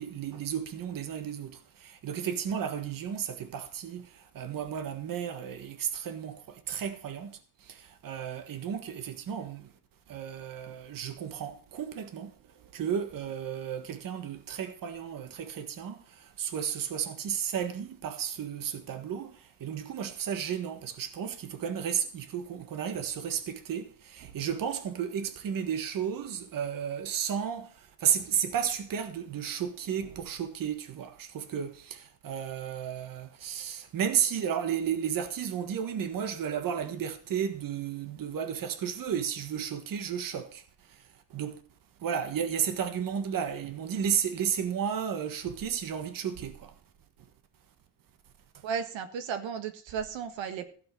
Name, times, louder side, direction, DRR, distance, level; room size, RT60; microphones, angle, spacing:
voice 1, 0.0-9.7 10.1-41.0 41.3-41.6 42.0-46.7 48.5-48.6, right 8 dB, 45° right, 1.5 m, -33 dB
voice 2, 48.6-50.7, right 7 dB, 85° right, 1.7 m, -34 dB
15.5 x 5.8 x 6.9 m
cardioid pair, 165°, 44 cm